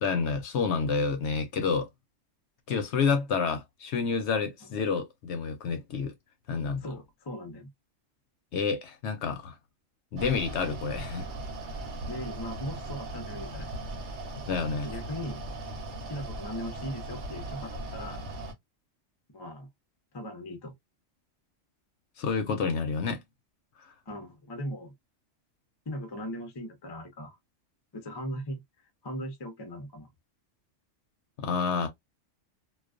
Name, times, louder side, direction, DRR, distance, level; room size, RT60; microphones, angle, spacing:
voice 1, 0.0-1.9 2.7-6.1 6.5-6.9 8.5-9.6 10.1-11.3 14.5-14.9 22.2-23.2 23.8-23.9 31.4-31.9, left 5 dB, 65° left, 0.8 m, -29 dB
voice 2, 6.8-7.7 12.1-13.7 14.8-15.4 16.1-18.3 19.3-19.7 20.1-20.7 24.1-24.9 25.9-27.4 27.9-28.6 29.0-30.1, equal, 30° left, 0.4 m, -38 dB
Mechanical fan, 10.2-18.5, right 2 dB, 65° right, 0.9 m, -38 dB
2.3 x 2.3 x 2.3 m
omnidirectional pair, 1.3 m